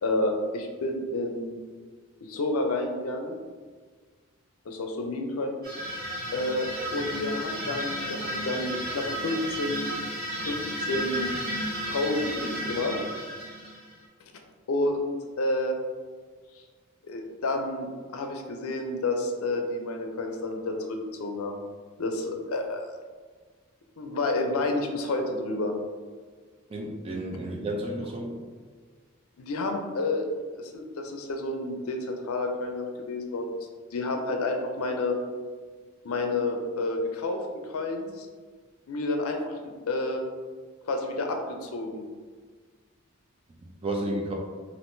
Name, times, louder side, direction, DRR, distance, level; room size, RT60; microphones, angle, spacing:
voice 1, 0.0-1.6 2.2-3.3 4.7-5.5 6.3-9.8 10.4-11.4 11.8-13.0 14.7-15.8 17.1-21.6 22.0-22.9 24.0-25.7 29.4-30.3 30.5-33.5 33.9-35.2 36.0-38.3 38.9-40.2 40.9-42.0, left 2 dB, 85° left, 4 dB, 0.5 m, -30 dB
sound 1, 5.6-14.0, equal, 45° right, 0.8 m, -33 dB
voice 2, 26.7-28.4 43.6-44.3, right 1 dB, 25° right, 0 dB, 0.4 m, -32 dB
3.5 x 2.5 x 2.6 m, 1.5 s
head